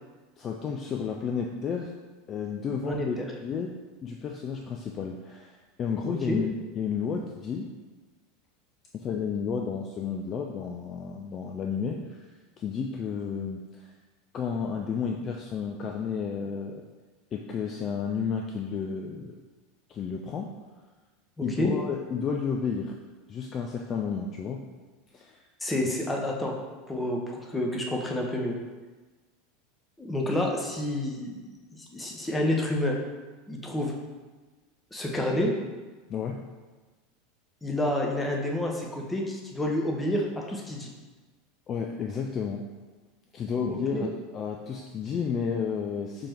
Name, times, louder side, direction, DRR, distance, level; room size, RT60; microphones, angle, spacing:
voice 1, 0.4-1.9 2.3-3.7 4.0-7.7 8.9-12.3 12.6-13.9 14.3-16.8 17.3-19.4 19.9-20.5 21.4-22.9 23.3-24.6 25.1-25.4 25.9-26.0 36.1-36.4 41.7-42.6 43.3-46.3, left 6 dB, 35° left, 2 dB, 0.4 m, -32 dB
voice 2, 2.8-3.3 6.1-6.4 21.4-21.7 25.6-26.6 26.9-28.5 30.0-32.9 33.5-33.9 34.9-35.5 37.6-40.9 43.7-44.1, left 1 dB, 10° left, 0 dB, 0.8 m, -29 dB
5.1 x 2.9 x 3.4 m, 1.3 s
figure-of-eight pair, 80°, 0 cm